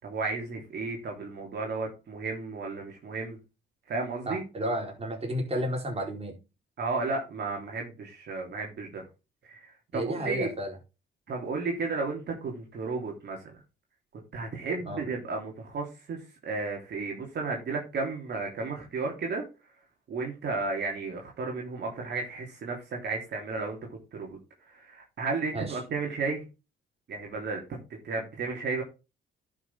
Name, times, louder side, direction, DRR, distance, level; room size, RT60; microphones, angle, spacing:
voice 1, 0.0-3.4 3.9-4.4 6.8-9.0 9.4-10.5 11.3-13.5 14.3-19.4 20.1-24.4 24.7-26.4 27.1-27.8 28.0-28.8, right 3 dB, 60° right, 3.3 m, -33 dB
voice 2, 4.3-6.3 9.9-10.7 14.8-15.0 25.5-25.8, equal, 30° right, 4.1 m, -32 dB
11.0 x 6.5 x 3.7 m
cardioid pair, 90°, 20 cm